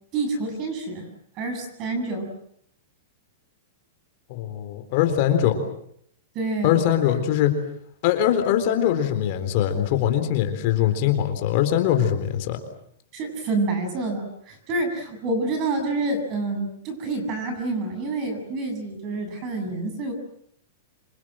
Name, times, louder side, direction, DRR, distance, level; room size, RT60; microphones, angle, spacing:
voice 1, 0.1-1.1 1.4-2.3 6.3-6.8 13.1-20.1, right 2 dB, 30° right, 7 dB, 7.7 m, -28 dB
voice 2, 4.3-5.6 6.6-7.5 8.0-12.6, left 11 dB, 40° left, 7 dB, 3.9 m, -22 dB
27.5 x 26.5 x 7.7 m, 0.69 s
supercardioid pair, 165°, 0 cm